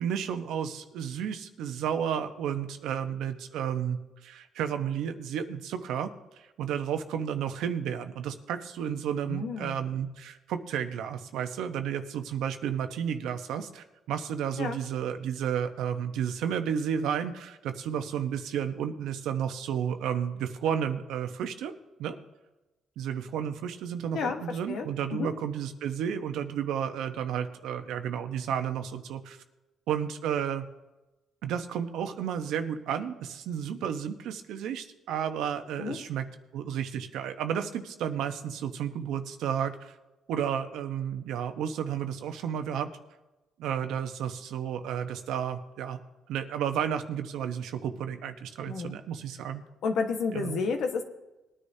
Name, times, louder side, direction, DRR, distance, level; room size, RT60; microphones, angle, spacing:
voice 1, 0.0-21.7 22.0-22.2 23.0-29.4 29.9-30.7 31.4-36.3 36.5-39.9 40.3-42.9 43.6-46.0 46.3-49.6 50.3-50.6, right 8 dB, 85° right, 7 dB, 1.0 m, -32 dB
voice 2, 9.3-9.8 14.6-14.8 24.1-25.3 35.8-36.0 48.7-49.0 49.8-51.0, left 5 dB, 75° left, 5 dB, 1.4 m, -31 dB
20.5 x 10.0 x 2.8 m, 1.0 s
cardioid pair, 105°, 0 cm